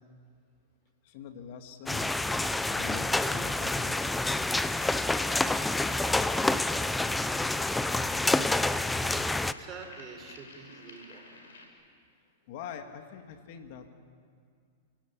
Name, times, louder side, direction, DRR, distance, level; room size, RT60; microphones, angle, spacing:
voice 1, 1.0-2.2 2.7-4.4 12.5-13.9, left 7 dB, 55° left, 6 dB, 2.3 m, -44 dB
sound 1, 1.9-9.5, left 2 dB, 5° left, 0.7 m, -28 dB
sound 2, 4.5-11.7, left 3 dB, 85° left, 5.3 m, -52 dB
voice 2, 9.0-11.2, right 5 dB, 30° right, 5 dB, 4.0 m, -46 dB
29.5 x 16.5 x 8.5 m, 2.2 s
hypercardioid pair, 120°, 0 cm